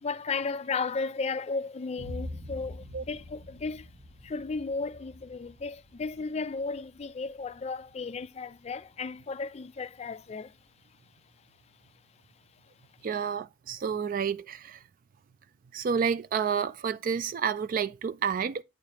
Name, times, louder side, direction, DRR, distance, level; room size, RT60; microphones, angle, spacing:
voice 1, 0.0-3.9 4.2-10.5, left 4 dB, 35° left, 0.4 m, -34 dB
Boom, 2.0-9.8, left 1 dB, 65° right, 1.5 m, -46 dB
voice 2, 13.0-14.8 15.7-18.6, right 7 dB, 50° right, 0.3 m, -30 dB
8.8 x 4.9 x 2.9 m
head